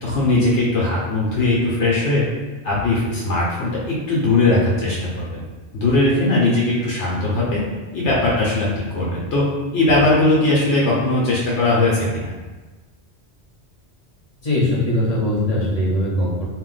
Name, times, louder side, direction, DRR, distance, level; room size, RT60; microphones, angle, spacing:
voice 1, 0.0-2.3 2.6-5.4 5.7-7.6 7.9-9.4 9.7-12.3, left 2 dB, 75° left, -5 dB, 0.9 m, -19 dB
voice 2, 14.4-16.4, left 1 dB, 40° left, -6 dB, 0.8 m, -20 dB
2.5 x 2.1 x 3.8 m, 1.2 s
omnidirectional pair, 1.2 m